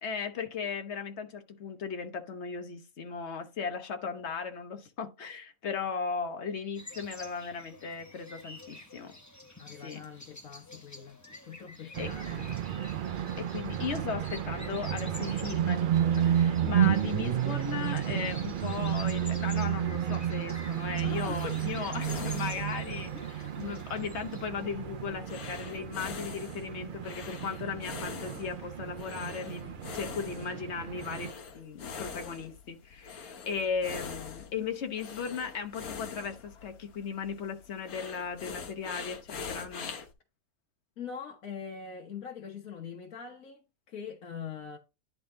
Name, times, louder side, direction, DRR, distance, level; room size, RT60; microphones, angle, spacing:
voice 1, 0.0-9.1 9.8-10.0 12.0-12.2 13.4-40.0, left 6 dB, 55° left, 1.2 m, -37 dB
sound 1, 6.7-24.5, left 2 dB, 15° left, 0.8 m, -49 dB
voice 2, 9.6-12.5 21.0-22.2 22.8-23.0 23.3-23.5 41.0-44.8, left 6 dB, 70° left, 1.5 m, -43 dB
sound 2, 11.9-31.3, right 10 dB, 75° right, 0.4 m, -32 dB
sound 3, 20.5-40.1, left 5 dB, 85° left, 1.5 m, -44 dB
10.5 x 3.8 x 3.8 m
omnidirectional pair, 1.5 m